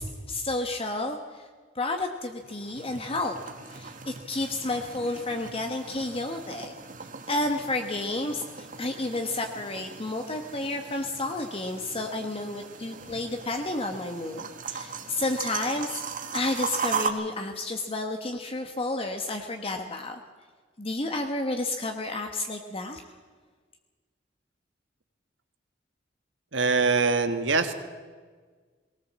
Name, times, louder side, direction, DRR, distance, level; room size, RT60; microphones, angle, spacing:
voice 1, 0.0-1.5 1.7-3.4 3.7-6.7 7.3-16.0 16.3-20.2 20.8-23.0, left 2 dB, 30° left, 5 dB, 1.2 m, -31 dB
sound 1, 2.3-17.1, right 5 dB, 45° right, 1.6 m, -38 dB
voice 2, 26.5-27.7, right 4 dB, 85° right, 8 dB, 1.7 m, -23 dB
19.5 x 18.5 x 7.4 m, 1.5 s
head